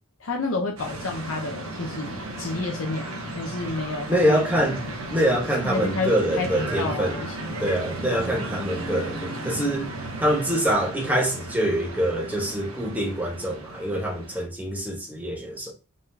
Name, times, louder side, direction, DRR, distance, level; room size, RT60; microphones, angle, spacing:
voice 1, 0.2-4.4 5.6-7.6, left 3 dB, 60° left, 0.7 m, -30 dB
sound 1, 0.8-14.5, right 2 dB, 65° right, 1.1 m, -35 dB
voice 2, 4.1-7.2 7.6-9.9 10.2-15.7, right 1 dB, 5° right, 1.0 m, -25 dB
3.8 x 3.7 x 2.7 m
head